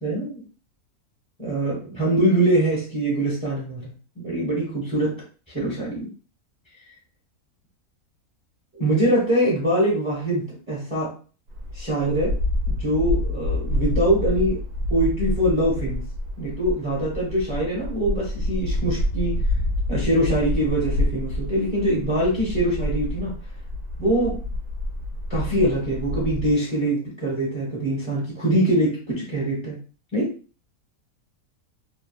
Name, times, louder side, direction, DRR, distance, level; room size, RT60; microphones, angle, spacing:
voice 1, 0.0-0.4 1.4-5.1 5.5-6.1 8.8-11.1 11.7-12.3 12.7-14.6 14.9-16.0 16.4-19.4 19.9-23.4 24.0-24.4 25.3-29.8 30.1-30.3, right 1 dB, 10° right, -5 dB, 0.8 m, -23 dB
sound 1, 11.5-26.5, left 1 dB, 80° right, 1.1 m, -27 dB
2.8 x 2.4 x 2.3 m, 0.37 s
omnidirectional pair, 1.6 m